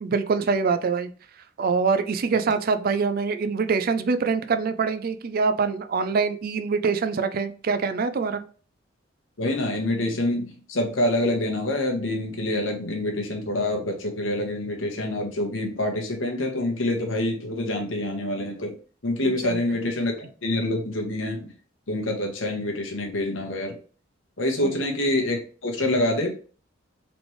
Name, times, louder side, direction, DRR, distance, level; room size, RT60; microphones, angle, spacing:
voice 1, 0.0-1.1 1.6-8.4 19.2-19.6 24.6-24.8, right 5 dB, 50° right, 10 dB, 0.4 m, -24 dB
voice 2, 9.4-18.7 19.0-21.5 21.9-23.8 24.4-26.4, left 1 dB, 75° left, 2 dB, 1.1 m, -26 dB
4.1 x 3.2 x 3.1 m, 0.39 s
head